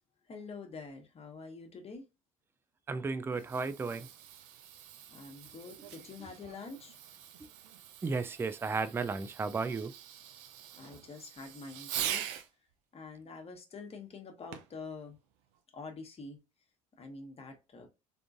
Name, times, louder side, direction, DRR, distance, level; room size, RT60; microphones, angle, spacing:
voice 1, 0.3-2.0 5.1-7.0 10.8-12.2 12.9-15.2 15.7-16.4 17.0-17.9, left 4 dB, 30° left, 1.2 m, -46 dB
voice 2, 2.9-4.1 6.2-6.3 8.0-9.9, right 4 dB, 10° right, 0.4 m, -34 dB
Fireworks, 3.2-12.5 14.5-14.8 15.5-15.6, right 10 dB, 60° right, 0.6 m, -43 dB
3.6 x 3.6 x 2.5 m
figure-of-eight pair, 60°, 19 cm